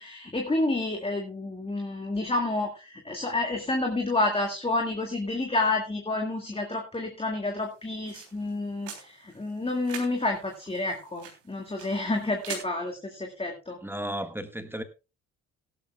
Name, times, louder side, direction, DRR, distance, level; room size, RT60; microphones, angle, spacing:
voice 1, 0.0-13.8, left 2 dB, 15° left, 2.4 m, -29 dB
sound 1, 7.6-12.6, right 7 dB, 75° right, 3.4 m, -44 dB
voice 2, 13.8-14.8, right 1 dB, 5° right, 1.7 m, -34 dB
17.0 x 12.0 x 2.4 m
hypercardioid pair, 50°, 37 cm